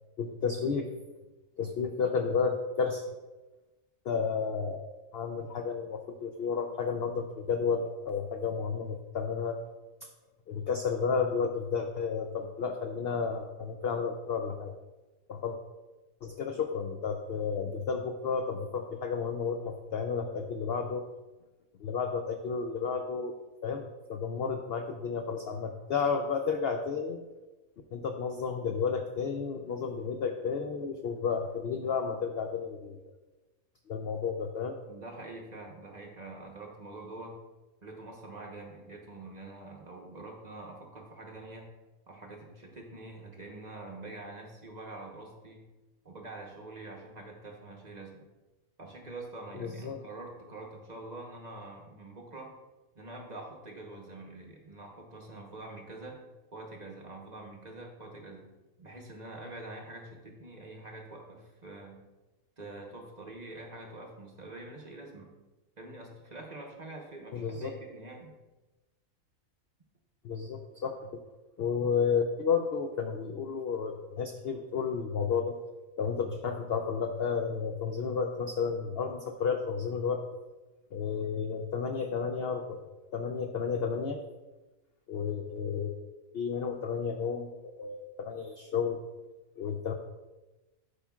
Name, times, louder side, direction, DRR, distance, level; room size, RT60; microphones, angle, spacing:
voice 1, 0.2-0.9 1.6-3.1 4.0-4.9 5.1-9.6 10.0-10.1 10.5-14.7 15.3-15.6 16.2-21.0 21.8-23.3 23.6-27.2 27.9-33.0 33.9-34.8 49.5-50.0 67.3-67.7 70.2-71.2 71.6-75.5 76.0-80.2 80.9-84.2 85.1-86.0 86.3-87.5 87.8-89.0 89.6-89.9, left 6 dB, 70° left, 4 dB, 0.6 m, -32 dB
voice 2, 34.9-37.4 37.8-41.7 42.1-45.6 46.0-48.2 48.8-52.5 52.9-56.2 56.5-58.5 58.8-62.0 62.6-65.3 65.8-68.4, right 2 dB, 35° right, -1 dB, 0.9 m, -45 dB
11.5 x 5.0 x 2.3 m, 1.1 s
omnidirectional pair, 1.5 m